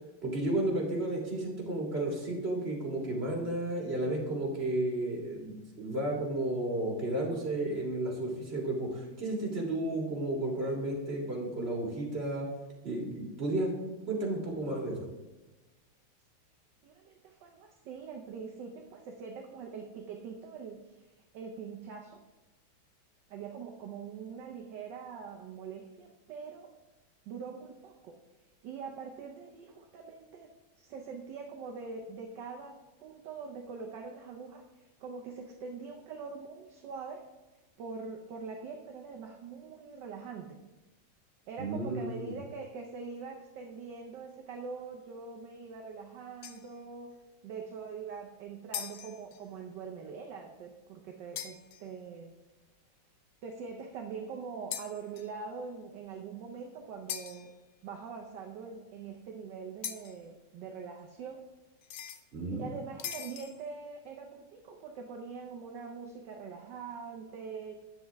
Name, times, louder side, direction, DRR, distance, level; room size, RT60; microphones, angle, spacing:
voice 1, 0.2-12.5 12.8-13.7 14.0-15.0 41.6-42.3 62.3-62.7, right 1 dB, 30° right, -2 dB, 2.1 m, -33 dB
voice 2, 16.8-20.9 21.3-22.2 23.3-26.7 27.3-28.2 28.6-30.5 30.8-37.2 37.8-40.6 41.5-47.1 47.4-52.3 53.4-57.5 57.8-61.4 62.5-67.7, right 5 dB, 65° right, 2 dB, 1.3 m, -43 dB
sound 1, 46.4-46.8 48.7-49.5 51.4-51.9 54.7-55.4 57.1-57.5 59.8-60.2 61.8-62.2 63.0-63.7, left 10 dB, 70° left, 1.1 m, -41 dB
9.2 x 7.6 x 3.4 m, 1.1 s
omnidirectional pair, 2.3 m